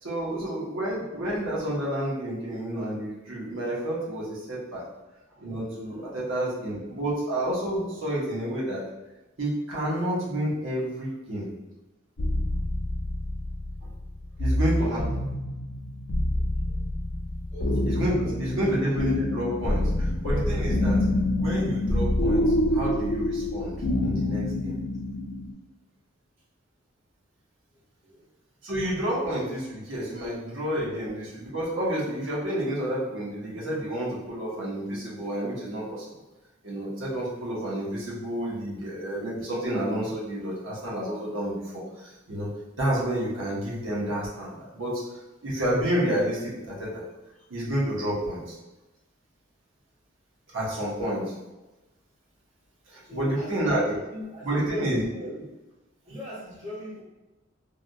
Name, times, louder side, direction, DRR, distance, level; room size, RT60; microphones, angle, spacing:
voice 1, 0.0-4.8 5.4-8.8 9.4-11.5 13.8-13.9 14.4-15.0 17.9-21.0 21.4-24.7 28.6-36.0 36.6-42.5 42.8-45.0 45.4-47.0 47.5-48.5 50.5-51.3 52.9-54.0 54.4-55.0, right 1 dB, 90° right, -6 dB, 1.1 m, -29 dB
sound 1, 12.2-25.5, left 1 dB, 75° left, 0.5 m, -27 dB
voice 2, 14.5-15.1 16.6-16.7 17.5-17.7 18.2-18.3 18.6-18.8 28.0-28.2 53.0-53.5 53.9-55.3 56.1-57.0, left 1 dB, 40° right, -7 dB, 1.2 m, -40 dB
3.4 x 2.7 x 2.3 m, 1.1 s
head